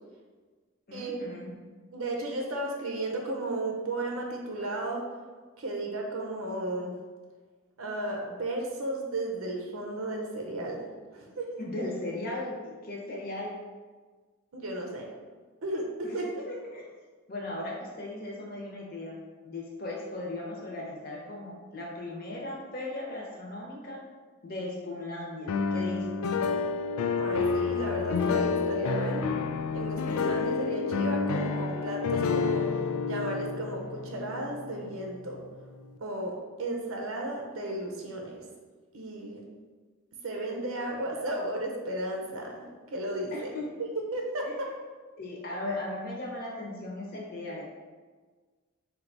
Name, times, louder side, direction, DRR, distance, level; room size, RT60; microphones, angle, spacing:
voice 1, 0.9-1.5 11.6-12.6 12.8-13.6 16.0-16.2 16.5-16.8 17.3-19.1 19.4-24.0 24.4-26.2 43.3-43.6 44.4-44.5 45.2-47.7, left 2 dB, 45° left, -3 dB, 0.9 m, -37 dB
voice 2, 1.9-5.0 5.6-7.0 7.8-11.5 14.5-15.1 15.6-16.4 27.1-29.3 29.7-32.7 33.1-35.4 36.0-36.3 36.6-38.4 38.9-39.4 40.2-43.5 43.8-44.7, right 1 dB, 80° right, 1 dB, 0.6 m, -34 dB
sound 1, 25.5-35.4, left 5 dB, 90° left, 0.3 m, -29 dB
4.4 x 2.3 x 3.9 m, 1.4 s
head